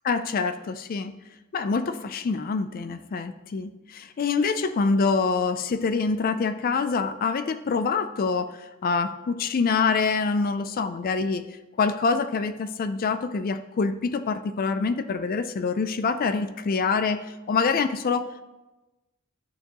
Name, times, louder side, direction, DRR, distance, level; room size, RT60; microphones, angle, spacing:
voice 1, 0.0-1.1 1.5-18.4, left 4 dB, 45° left, 11 dB, 0.4 m, -26 dB
11.5 x 6.6 x 2.9 m, 1.1 s
head